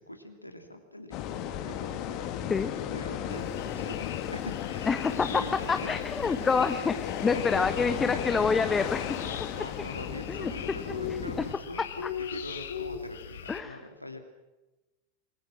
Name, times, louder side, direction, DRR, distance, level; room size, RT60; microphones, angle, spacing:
voice 1, 0.0-2.3 2.9-4.9 5.3-5.9 7.2-7.6 9.1-11.8 12.3-14.2, left 1 dB, 90° left, 5 dB, 2.8 m, -43 dB
sound 1, 1.1-11.5, left 10 dB, 40° left, 2.1 m, -35 dB
sound 2, 3.3-13.6, left 8 dB, 60° left, 1.9 m, -41 dB
voice 2, 4.9-5.4 5.7-9.0 10.3-10.5 13.5-13.8, left 5 dB, 15° left, 9 dB, 1.0 m, -27 dB
27.0 x 22.5 x 6.1 m, 1.1 s
figure-of-eight pair, 90°, 0 cm